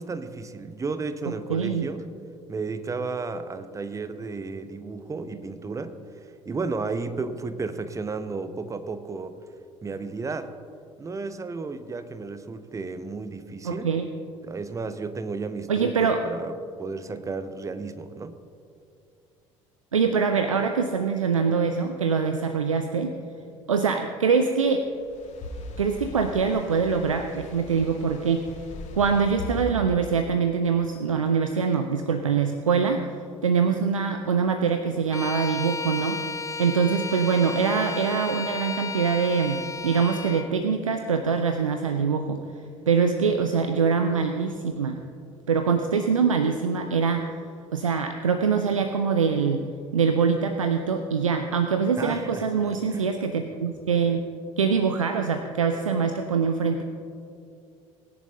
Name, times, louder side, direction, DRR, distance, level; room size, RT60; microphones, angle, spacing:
voice 1, 0.0-2.0 2.5-9.3 9.8-10.5 11.0-13.9 14.4-18.4 52.0-53.1, right 4 dB, 20° right, 11 dB, 0.8 m, -33 dB
voice 2, 1.5-1.8 13.6-14.1 15.7-16.2 19.9-23.1 23.7-24.9 25.8-28.5 28.9-33.1 33.4-36.2 36.6-42.4 42.9-45.0 45.5-47.3 47.7-49.6 49.9-54.2 54.6-56.8, right 5 dB, 80° right, 6 dB, 0.5 m, -24 dB
sound 1, 24.9-29.7, left 2 dB, 45° left, 2.0 m, -39 dB
Bowed string instrument, 35.1-40.5, left 4 dB, 20° left, 0.7 m, -33 dB
20.0 x 10.5 x 2.8 m, 2.5 s
figure-of-eight pair, 55°, 17 cm